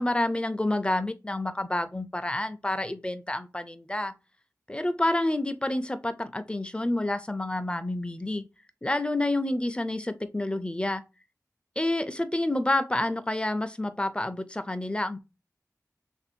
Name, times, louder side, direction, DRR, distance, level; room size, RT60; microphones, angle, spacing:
voice 1, 0.0-4.2 4.7-8.5 8.8-11.0 11.8-15.2, left 1 dB, 15° left, 0.5 m, -28 dB
3.4 x 2.6 x 4.3 m
wide cardioid pair, 50°, 6 cm